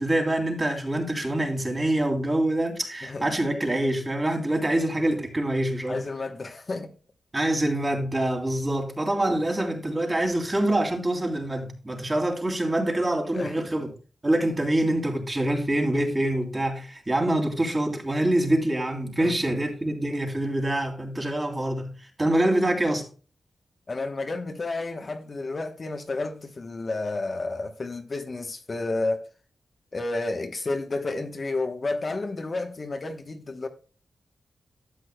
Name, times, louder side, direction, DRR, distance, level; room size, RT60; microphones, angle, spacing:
voice 1, 0.0-6.0 7.3-13.9 14.2-23.1, right 1 dB, 25° right, 2.8 m, -25 dB
voice 2, 5.9-6.9 13.3-13.7 19.2-19.6 23.9-29.3 29.9-33.7, left 2 dB, 40° left, 1.0 m, -31 dB
12.5 x 8.3 x 2.2 m
wide cardioid pair, 105°, 0 cm